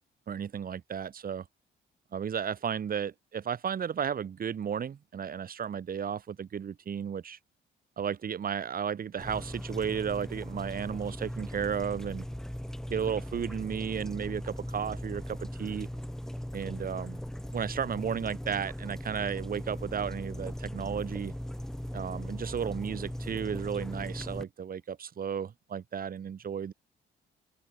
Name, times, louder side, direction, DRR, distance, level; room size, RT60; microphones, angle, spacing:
voice 1, 0.3-1.4 2.1-7.4 8.0-12.2 12.9-15.9 16.5-17.2 17.5-21.3 21.9-26.7, right 7 dB, 45° right, 1.5 m, -34 dB
sound 1, 9.2-24.4, equal, ahead, 3.1 m, -39 dB
open air
cardioid pair, 90°, 20 cm